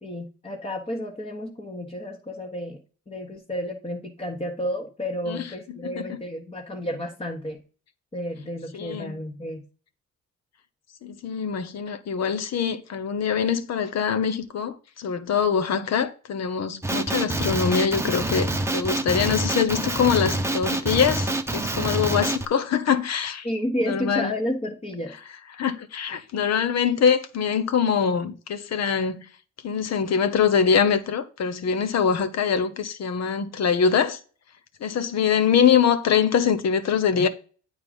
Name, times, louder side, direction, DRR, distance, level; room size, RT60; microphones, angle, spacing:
voice 1, 0.0-2.8 3.1-7.6 8.1-9.6 23.4-25.1, equal, 20° left, 1.5 m, -31 dB
voice 2, 8.7-9.1 11.0-23.5 23.8-24.3 25.6-29.2 29.6-34.2 34.8-37.3, left 7 dB, 60° left, 1.1 m, -23 dB
Male speech man speaking, 16.8-22.5, right 1 dB, 10° right, 1.0 m, -26 dB
8.9 x 3.8 x 5.3 m
cardioid pair, 90°, 30 cm